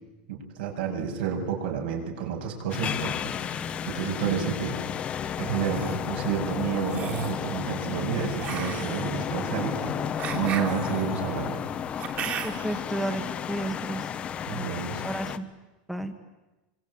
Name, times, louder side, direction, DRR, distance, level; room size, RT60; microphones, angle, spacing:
voice 1, 0.3-3.5 3.9-5.0 5.4-10.0 10.3-11.6 14.5-15.0, right 7 dB, 70° right, 2 dB, 7.3 m, -30 dB
sound 1, 2.7-15.4, left 8 dB, 20° left, 1.0 m, -32 dB
sound 2, 5.5-6.0 6.8-7.4 8.4-12.8, right 8 dB, 30° right, 2.9 m, -36 dB
voice 2, 12.4-14.1 14.5-14.7 15.0-15.5 15.9-16.1, right 1 dB, ahead, 6 dB, 1.3 m, -32 dB
25.5 x 25.0 x 9.0 m, 1.1 s
supercardioid pair, 170°, 5 cm